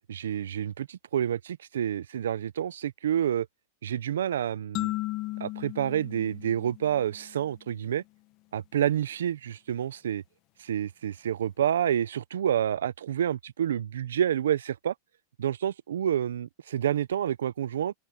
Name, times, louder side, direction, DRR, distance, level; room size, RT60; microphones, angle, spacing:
voice 1, 0.1-3.5 3.8-4.9 5.4-8.0 8.5-10.2 10.6-14.9 15.4-17.9, right 10 dB, 90° right, 0.6 m, -28 dB
sound 1, 4.7-7.4, left 19 dB, 45° left, 0.9 m, -35 dB
open air
hypercardioid pair, 130°, 0 cm